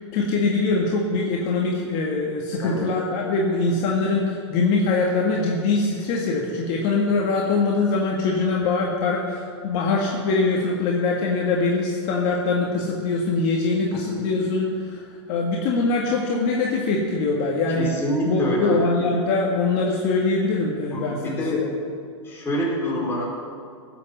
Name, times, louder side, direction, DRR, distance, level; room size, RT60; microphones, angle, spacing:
voice 1, 0.1-15.0 15.3-17.9 18.3-21.7, left 3 dB, 45° left, -2 dB, 1.9 m, -23 dB
voice 2, 13.9-14.3 17.7-18.9 20.9-21.6 22.2-23.2, equal, 15° left, -4 dB, 4.5 m, -26 dB
17.5 x 7.5 x 7.4 m, 2.2 s
hypercardioid pair, 140°, 16 cm